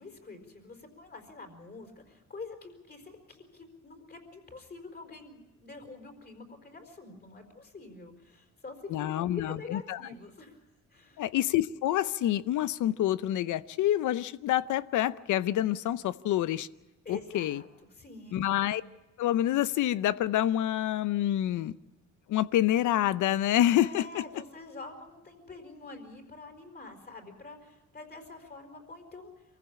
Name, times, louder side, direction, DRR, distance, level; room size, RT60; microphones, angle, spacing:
voice 1, 0.0-10.6 10.9-11.2 17.0-18.5 23.8-29.3, left 3 dB, 35° left, 4 dB, 4.6 m, -46 dB
voice 2, 8.9-10.0 11.2-16.7 17.1-17.6 18.3-18.8 19.2-21.8 22.3-24.2, left 12 dB, 75° left, 16 dB, 0.7 m, -27 dB
23.5 x 15.0 x 8.6 m, 1.0 s
cardioid pair, 90°, 30 cm